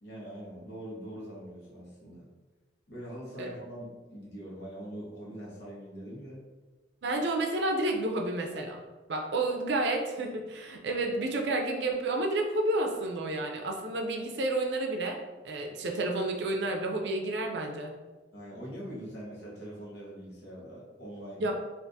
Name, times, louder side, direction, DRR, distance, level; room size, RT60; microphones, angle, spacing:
voice 1, 0.0-2.3 2.9-6.4 18.3-21.5, equal, 65° left, -5 dB, 1.0 m, -43 dB
voice 2, 7.0-8.8 9.1-15.2 15.4-17.9 21.4-21.5, right 2 dB, 70° right, 2 dB, 0.5 m, -30 dB
3.5 x 2.5 x 2.6 m, 1.2 s
head